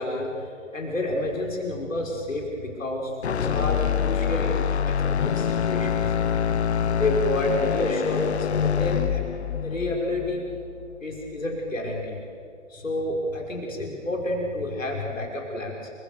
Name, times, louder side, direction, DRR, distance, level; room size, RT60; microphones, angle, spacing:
voice 1, 0.0-5.0 5.2-6.1 6.9-9.3 9.6-10.4 11.0-12.2 12.7-15.9, left 1 dB, 85° left, 0 dB, 5.9 m, -29 dB
sound 1, 3.2-11.4, left 8 dB, 60° left, 1.0 m, -26 dB
28.5 x 26.0 x 7.0 m, 2.4 s
figure-of-eight pair, 140°, 38 cm